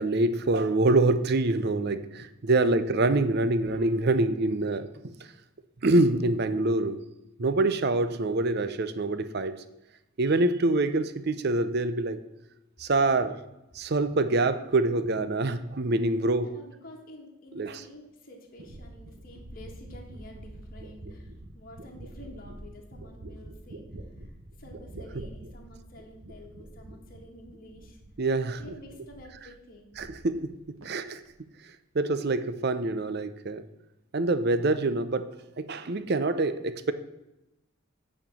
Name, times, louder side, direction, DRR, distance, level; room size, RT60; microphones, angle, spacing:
voice 1, 0.0-4.9 5.8-7.1 7.4-9.6 10.2-12.2 12.8-13.4 13.7-16.5 17.6-17.8 25.1-25.2 28.2-28.6 30.0-31.2 31.9-33.7 34.1-36.9, right 2 dB, 50° right, 0.6 m, -25 dB
voice 2, 16.4-23.8 24.2-24.3 24.6-28.0 28.6-30.0, left 1 dB, 40° left, 1.7 m, -49 dB
sound 1, 18.6-28.3 28.5-29.4 29.7-30.6 30.8-31.3, right 1 dB, 70° right, 1.0 m, -46 dB
8.8 x 4.4 x 7.0 m
head